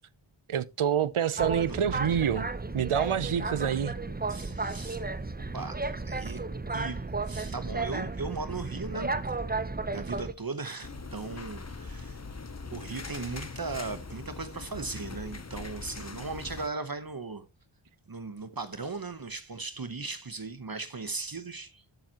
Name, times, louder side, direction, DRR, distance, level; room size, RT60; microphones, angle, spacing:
voice 1, 0.5-2.5 2.7-4.0, right 8 dB, 85° right, 0.7 m, -27 dB
Boat Water vehicle, 1.4-10.3, right 3 dB, 20° right, 0.8 m, -33 dB
voice 2, 4.3-5.0 5.5-6.4 6.7-9.1 9.9-12.2 12.7-17.5 18.1-21.8, right 3 dB, 45° right, 1.0 m, -37 dB
sound 1, 10.8-16.7, left 4 dB, 30° left, 0.9 m, -41 dB
12.0 x 7.3 x 2.9 m
wide cardioid pair, 60°, 49 cm